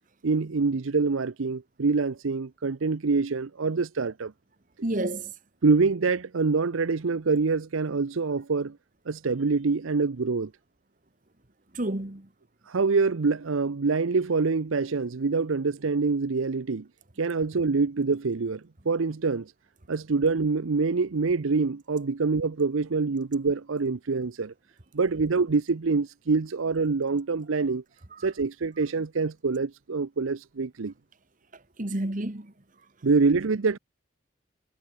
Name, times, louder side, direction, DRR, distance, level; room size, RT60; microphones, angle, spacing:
voice 1, 0.2-4.3 5.6-8.8 9.1-10.5 12.7-16.9 17.2-19.5 19.9-24.5 24.9-27.8 28.2-30.9 33.0-33.8, right 4 dB, 75° right, 0.7 m, -25 dB
voice 2, 4.8-5.3 11.7-12.3 28.1-28.2 31.8-32.5, right 1 dB, 40° right, 1.5 m, -30 dB
head